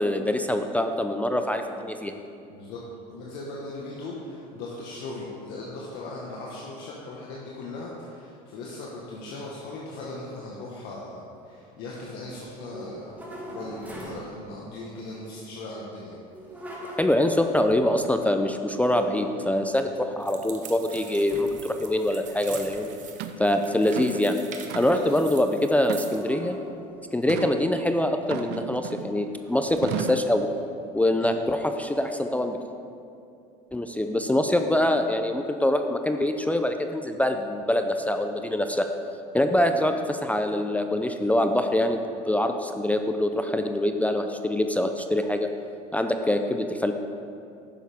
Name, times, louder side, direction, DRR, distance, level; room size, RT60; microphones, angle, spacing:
voice 1, 0.0-2.1 17.0-22.9 23.4-24.4 24.7-26.6 27.1-30.5 30.9-32.6 33.7-38.9 39.3-42.0 42.3-45.5 45.9-46.9, left 1 dB, 5° left, 6 dB, 0.4 m, -24 dB
voice 2, 2.5-2.8 3.1-13.2 13.4-16.1 19.7-20.0 24.7-25.2 31.2-31.3, left 2 dB, 65° left, -4 dB, 1.3 m, -38 dB
sound 1, 12.4-14.4 16.3-18.4 18.8-19.8 20.3-20.9 21.3-21.6 21.9-23.1 23.6-23.8 25.9-27.9 28.5-28.8 29.3-30.9, right 1 dB, 10° right, 1.7 m, -42 dB
sound 2, 20.2-26.3, right 7 dB, 40° right, 1.0 m, -44 dB
sound 3, 22.6-22.7 23.2-23.4 23.8-24.2 24.7-25.1 25.8-26.5 27.3-27.6 28.3-29.2 29.8-30.3, right 8 dB, 60° right, 0.6 m, -34 dB
10.5 x 7.1 x 3.5 m, 2.6 s
supercardioid pair, 95°, 19 cm